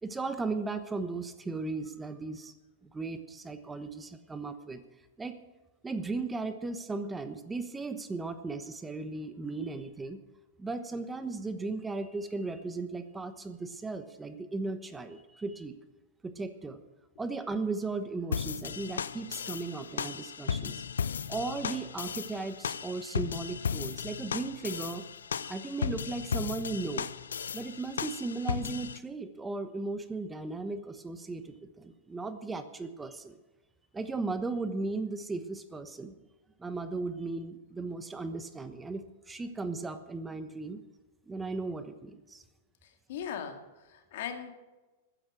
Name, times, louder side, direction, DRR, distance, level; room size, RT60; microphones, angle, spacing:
voice 1, 0.0-2.5 2.8-4.8 5.2-5.4 5.8-10.2 10.6-15.8 16.2-16.8 17.2-20.8 21.3-25.0 25.5-27.1 27.5-33.4 33.9-36.2 36.6-40.8 41.3-42.4, right 3 dB, 15° right, 10 dB, 1.1 m, -36 dB
sound 1, 18.3-29.0, left 7 dB, 85° left, 0.5 m, -35 dB
voice 2, 42.8-44.5, left 8 dB, 65° left, 6 dB, 2.1 m, -39 dB
14.5 x 10.0 x 6.1 m, 1.1 s
hypercardioid pair, 110°, 0 cm